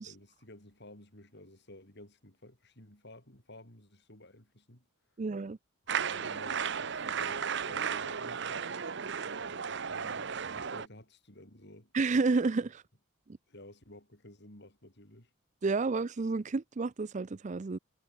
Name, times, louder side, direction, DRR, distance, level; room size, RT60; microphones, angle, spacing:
voice 1, 0.0-4.9 6.0-8.8 9.4-11.9 13.5-15.3, left 1 dB, 50° left, 6.1 m, -53 dB
voice 2, 5.2-5.6 11.9-12.8 15.6-17.8, right 3 dB, 35° right, 0.4 m, -30 dB
sound 1, 5.9-10.9, right 7 dB, 55° right, 0.9 m, -35 dB
head